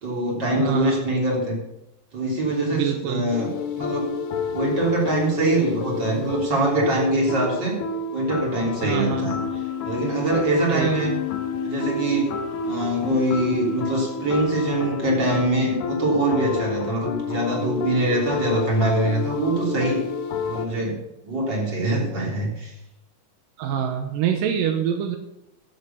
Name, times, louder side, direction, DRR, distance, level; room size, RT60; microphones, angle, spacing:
voice 1, 0.0-1.6 2.1-4.2 4.5-7.8 8.1-9.4 9.8-11.1 11.6-20.1 20.4-22.7, right 2 dB, 30° right, -1 dB, 3.8 m, -24 dB
voice 2, 0.6-1.0 2.7-3.3 8.8-9.3 10.7-11.0 23.6-25.2, right 8 dB, 90° right, 5 dB, 2.6 m, -25 dB
sound 1, 3.3-20.7, left 5 dB, 85° left, 1.2 m, -29 dB
14.5 x 7.6 x 5.8 m, 0.89 s
omnidirectional pair, 3.8 m